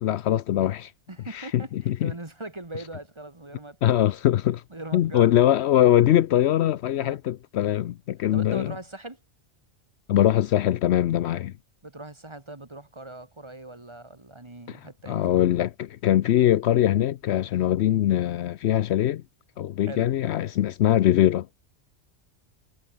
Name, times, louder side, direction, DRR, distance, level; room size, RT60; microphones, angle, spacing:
voice 1, 0.0-0.9 1.3-2.1 3.8-4.6 4.9-8.7 10.1-11.5 14.7-14.8 15.1-19.2 19.6-21.5, left 12 dB, 75° left, 0.9 m, -22 dB
voice 2, 1.1-4.1 4.7-5.4 7.0-7.2 8.3-9.2 11.8-15.4 19.8-20.1, right 2 dB, 25° right, 1.8 m, -40 dB
omnidirectional pair, 1.2 m